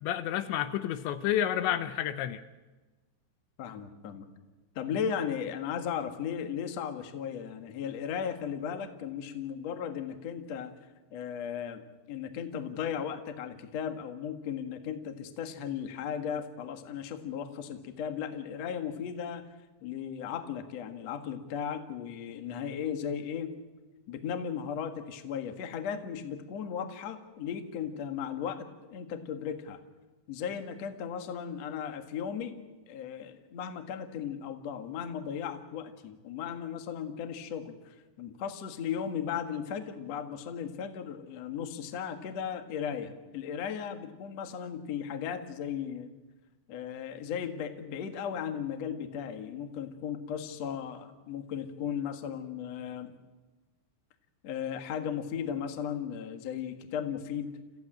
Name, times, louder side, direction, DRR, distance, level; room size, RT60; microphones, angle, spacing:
voice 1, 0.0-2.4, left 11 dB, 80° left, 11 dB, 3.0 m, -30 dB
voice 2, 3.6-4.3 4.8-10.7 11.1-19.4 19.8-23.6 24.1-29.8 30.3-32.5 32.9-46.1 46.7-53.1 54.4-57.6, left 8 dB, 55° left, 7 dB, 1.9 m, -36 dB
29.0 x 15.0 x 9.0 m, 1.2 s
omnidirectional pair, 5.3 m